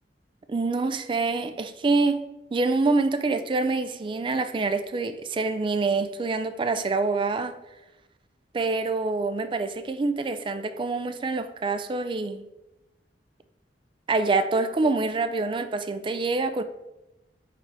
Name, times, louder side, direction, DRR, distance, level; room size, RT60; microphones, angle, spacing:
voice 1, 0.5-7.5 8.5-12.5 14.1-16.6, right 3 dB, 30° right, 0.4 m, -26 dB
4.9 x 4.3 x 4.8 m
head